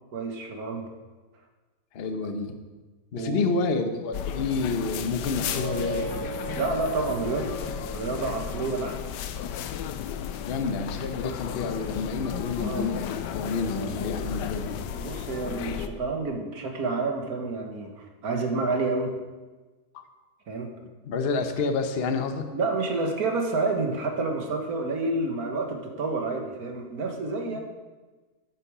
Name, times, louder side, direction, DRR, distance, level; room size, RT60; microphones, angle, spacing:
voice 1, 0.1-0.9 3.1-3.5 6.6-7.6 7.8-9.0 12.6-12.9 14.9-19.1 20.5-20.7 22.5-27.6, right 3 dB, 60° right, 3 dB, 1.8 m, -29 dB
voice 2, 1.9-2.5 3.1-6.1 10.5-14.8 19.9-20.1 21.1-22.5 27.5-27.6, left 4 dB, 45° left, 6 dB, 1.0 m, -29 dB
sound 1, 4.1-15.9, left 9 dB, 85° left, 1.3 m, -34 dB
sound 2, 5.3-8.8, right 4 dB, 75° right, 1.2 m, -38 dB
11.0 x 8.4 x 5.0 m, 1.3 s
omnidirectional pair, 1.8 m